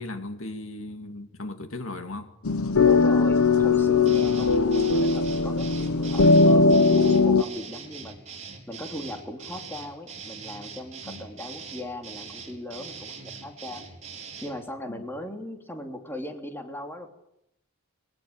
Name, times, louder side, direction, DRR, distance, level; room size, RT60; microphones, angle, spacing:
voice 1, 0.0-2.3 11.0-11.2 14.9-15.0, left 2 dB, 70° left, 2.4 m, -37 dB
sound 1, 2.4-7.4, left 4 dB, 90° left, 1.1 m, -19 dB
voice 2, 2.8-8.2 8.7-13.8 14.4-17.1, left 1 dB, 10° left, 3.0 m, -38 dB
sound 2, 4.1-14.6, right 6 dB, 35° right, 5.2 m, -42 dB
23.0 x 21.5 x 8.9 m
head